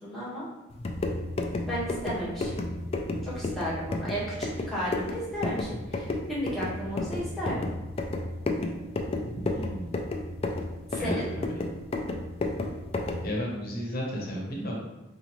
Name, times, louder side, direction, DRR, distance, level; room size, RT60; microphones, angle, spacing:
voice 1, 0.0-0.4 1.7-2.6 3.2-7.6 10.9-11.3, equal, ahead, -9 dB, 1.3 m, -33 dB
sound 1, 0.7-13.3, left 2 dB, 30° left, 0.3 m, -32 dB
voice 2, 9.3-10.1 10.9-11.5 13.2-14.8, equal, 50° left, -3 dB, 0.9 m, -34 dB
4.2 x 2.5 x 3.0 m, 1.0 s
head